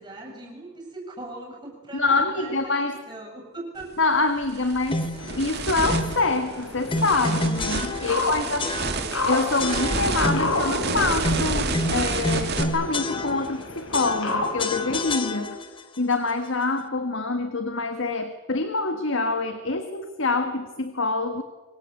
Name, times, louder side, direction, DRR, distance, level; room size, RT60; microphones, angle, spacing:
voice 1, 0.0-4.8 5.1-5.3 8.0-9.3, right 2 dB, 20° right, 1 dB, 7.8 m, -41 dB
voice 2, 1.9-3.0 4.0-8.7 9.3-15.6 16.0-21.4, left 3 dB, 60° left, 8 dB, 1.6 m, -26 dB
sound 1, 3.8-3.9 4.4-12.6, right 4 dB, 50° right, 2.3 m, -29 dB
sound 2, 4.9-5.3 5.9-6.3 6.9-8.3 8.6-9.2 9.6-10.7 11.2-13.6 13.9-15.8, left 2 dB, 25° left, 1.2 m, -29 dB
sound 3, 5.2-15.0, left 2 dB, 80° left, 4.8 m, -32 dB
25.0 x 23.0 x 8.4 m, 1.3 s
head